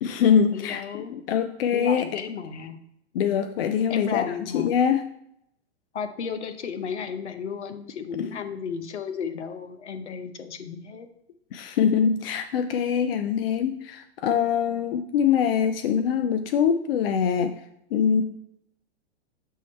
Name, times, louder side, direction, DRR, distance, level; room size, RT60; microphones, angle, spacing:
voice 1, 0.0-2.1 3.1-5.1 8.2-8.4 11.5-17.6 17.9-18.2, left 7 dB, 55° left, 8 dB, 0.5 m, -23 dB
voice 2, 0.5-1.1 1.7-2.8 3.9-4.7 5.9-11.1, left 6 dB, 75° left, 8 dB, 0.9 m, -33 dB
7.4 x 3.6 x 4.4 m, 0.77 s
hypercardioid pair, 115°, 34 cm